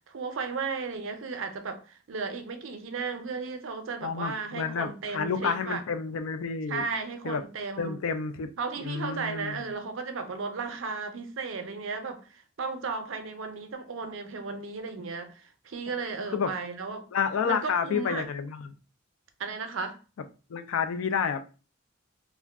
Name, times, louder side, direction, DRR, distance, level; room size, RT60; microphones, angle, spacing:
voice 1, 0.1-5.8 6.7-8.0 8.6-17.0 17.4-18.2 19.4-20.0, right 4 dB, 65° right, 0.5 m, -35 dB
voice 2, 4.0-6.8 7.2-7.4 7.8-8.5 8.8-9.6 16.3-16.5 17.1-18.7 20.5-21.4, left 6 dB, 85° left, 0.4 m, -29 dB
2.4 x 2.1 x 3.4 m
head